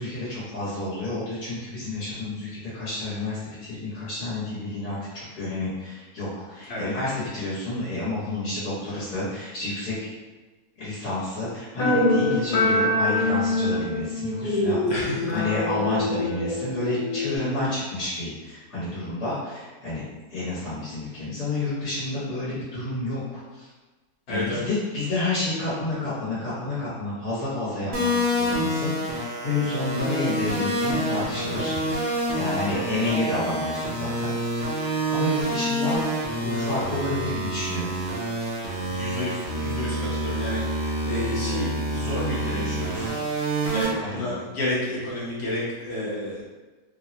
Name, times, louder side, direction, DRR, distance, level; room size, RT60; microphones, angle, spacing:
voice 1, 0.0-10.1 10.8-20.0 20.3-23.7 24.3-31.8 32.3-34.3 34.8-36.0 36.4-37.9 43.9-44.3, left 2 dB, 85° left, -11 dB, 1.7 m, -30 dB
sound 1, 11.8-17.4, left 2 dB, 70° left, 1.3 m, -24 dB
voice 2, 14.9-15.3 24.3-24.6 38.8-43.2 43.7-46.4, left 1 dB, 50° left, -6 dB, 0.9 m, -31 dB
sound 2, 27.9-43.9, right 1 dB, 80° right, 1.2 m, -27 dB
3.5 x 2.0 x 2.6 m, 1.3 s
omnidirectional pair, 1.6 m